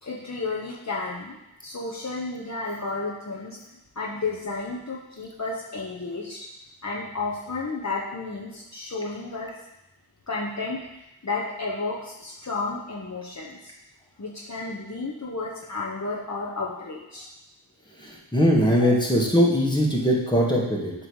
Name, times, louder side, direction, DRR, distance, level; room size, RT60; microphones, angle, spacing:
voice 1, 0.0-3.6 3.9-6.5 6.8-9.5 10.3-10.8 11.2-13.7 14.2-17.3 18.8-18.9, left 3 dB, 35° left, -5 dB, 1.0 m, -32 dB
voice 2, 18.0-20.9, equal, 10° left, -3 dB, 1.7 m, -21 dB
7.9 x 3.3 x 6.3 m, 0.94 s
wide cardioid pair, 45°, 46 cm